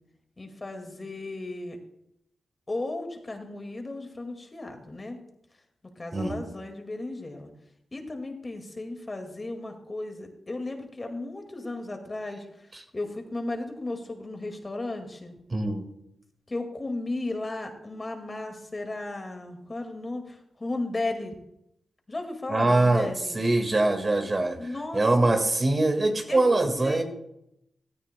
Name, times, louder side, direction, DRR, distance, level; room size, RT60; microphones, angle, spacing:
voice 1, 0.4-1.8 2.7-5.2 6.0-7.5 7.9-15.3 16.5-21.4 22.1-23.4 24.6-25.0 26.3-26.6 26.8-27.0, left 2 dB, 30° left, 4 dB, 1.9 m, -35 dB
voice 2, 15.5-15.9 22.5-24.7 24.9-27.0, right 2 dB, 35° right, 5 dB, 1.7 m, -23 dB
16.5 x 13.0 x 2.2 m, 0.79 s
cardioid pair, 70°, 0 cm